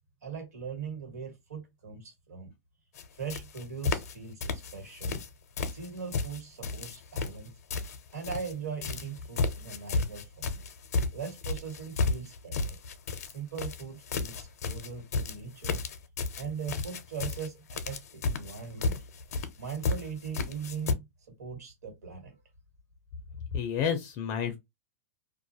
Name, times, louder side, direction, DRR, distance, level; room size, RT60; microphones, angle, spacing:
voice 1, 0.2-2.5 3.2-5.2 5.7-7.5 8.1-10.5 11.1-12.8 13.2-15.8 16.4-19.0 19.6-21.0 21.4-22.4, right 6 dB, 90° right, 1.7 m, -40 dB
sound 1, 2.9-3.0 3.3-4.1 4.4-5.3 5.6-8.5 8.8-20.9, left 3 dB, 80° left, 0.6 m, -32 dB
voice 2, 23.5-24.6, left 7 dB, 35° left, 0.5 m, -30 dB
2.4 x 2.3 x 2.7 m
supercardioid pair, 150°, 9 cm